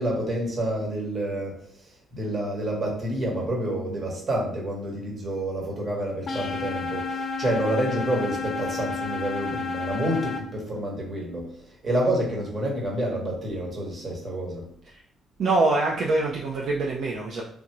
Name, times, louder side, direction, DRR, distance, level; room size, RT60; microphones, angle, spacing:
voice 1, 0.0-1.5 2.1-11.5 11.8-14.6, right 1 dB, 40° right, -1 dB, 1.2 m, -28 dB
sound 1, 6.3-10.4, left 4 dB, 45° left, 0.5 m, -31 dB
voice 2, 15.4-17.4, right 3 dB, 65° right, -3 dB, 0.5 m, -24 dB
3.4 x 2.5 x 3.0 m, 0.63 s
cardioid pair, 90°, 0 cm